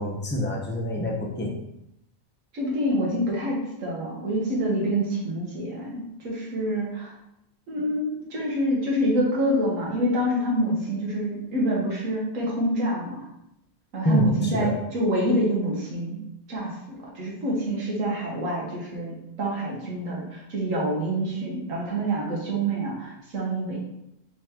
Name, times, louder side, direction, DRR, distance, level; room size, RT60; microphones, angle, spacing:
voice 1, 0.0-1.5 14.0-14.8, left 1 dB, 15° left, -1 dB, 0.4 m, -26 dB
voice 2, 2.5-7.1 7.7-13.3 13.9-16.2 16.5-23.8, right 1 dB, 85° right, -3 dB, 1.5 m, -27 dB
4.4 x 3.5 x 2.9 m, 0.83 s
omnidirectional pair, 1.3 m